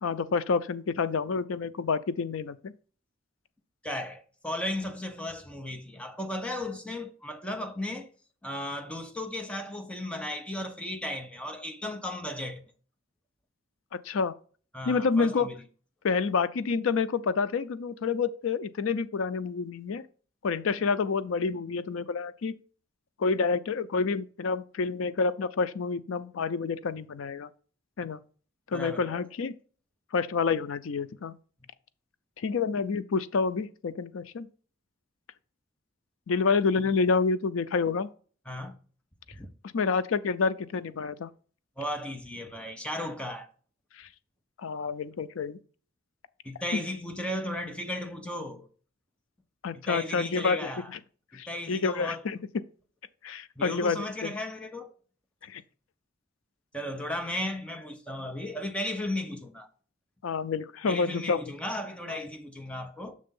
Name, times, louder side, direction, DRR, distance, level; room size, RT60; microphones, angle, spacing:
voice 1, 0.0-2.7 13.9-14.3 14.9-15.5 16.0-20.0 20.4-22.5 23.2-27.5 28.0-28.2 28.7-29.5 30.1-31.4 32.4-34.5 36.3-38.1 39.7-41.3 44.0-44.1 44.6-45.6 46.7-46.8 49.6-51.0 51.3-52.4 53.2-54.3 55.4-55.6 60.2-61.4 62.1-62.2, left 5 dB, 85° left, 0.5 m, -28 dB
voice 2, 3.8-8.1 8.4-12.6 14.7-15.6 28.7-29.2 38.5-38.8 39.4-39.5 41.8-43.5 46.4-48.7 49.7-50.9 51.3-52.2 53.6-54.9 56.7-59.7 60.8-63.1, left 1 dB, 5° left, 0.7 m, -35 dB
6.4 x 3.4 x 5.3 m
head